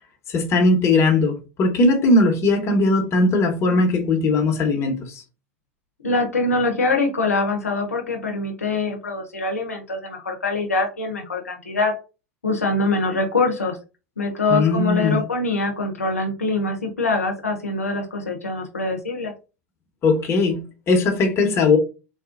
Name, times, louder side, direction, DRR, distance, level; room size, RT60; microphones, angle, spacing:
voice 1, 0.3-5.2 14.5-15.2 20.0-21.8, left 2 dB, 35° left, 1.0 m, -19 dB
voice 2, 6.0-11.9 12.4-13.8 14.2-19.3, left 3 dB, 85° left, 0.7 m, -24 dB
4.1 x 2.4 x 2.5 m
figure-of-eight pair, 85°, 8 cm